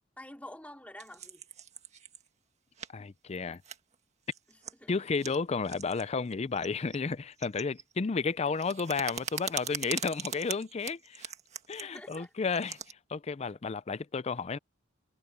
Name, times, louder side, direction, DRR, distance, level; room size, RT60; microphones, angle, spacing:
voice 1, 0.2-1.4 4.5-5.1 8.4-8.5 11.8-12.3, left 1 dB, 5° left, 3.0 m, -48 dB
sound 1, 1.0-2.3 2.7-2.9 3.3-3.9 4.3-4.7 5.0-5.4 5.6-6.0 6.3-7.9 8.2-12.9, right 8 dB, 35° right, 1.7 m, -41 dB
voice 2, 2.9-3.6 4.9-11.3 11.7-14.6, left 4 dB, 30° left, 0.4 m, -32 dB
head